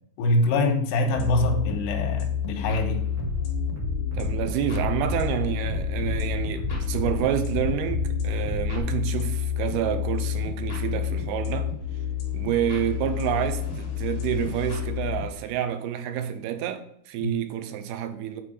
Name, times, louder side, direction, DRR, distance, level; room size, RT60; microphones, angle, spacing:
voice 1, 0.2-3.0 17.2-17.3, left 2 dB, 90° left, 3.0 m, -24 dB
sound 1, 1.2-15.3, left 9 dB, 70° left, 3.0 m, -30 dB
Bass drum, 3.2-8.8, equal, 65° right, 3.4 m, -31 dB
voice 2, 4.1-11.7 12.3-18.4, right 10 dB, 85° right, 2.6 m, -28 dB
8.4 x 3.8 x 4.8 m
omnidirectional pair, 4.5 m